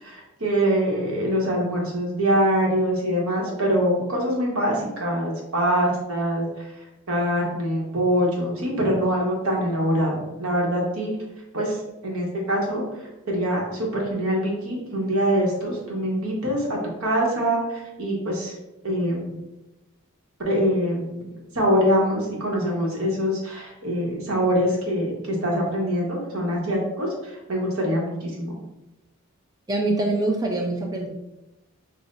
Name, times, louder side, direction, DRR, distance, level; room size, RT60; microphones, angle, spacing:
voice 1, 0.0-6.5 7.1-11.1 11.5-18.5 18.8-19.4 20.4-21.3 21.5-28.6, equal, 75° right, -2 dB, 1.2 m, -24 dB
voice 2, 29.7-31.1, right 2 dB, 15° right, 0 dB, 0.5 m, -24 dB
6.4 x 2.4 x 2.6 m, 0.97 s
head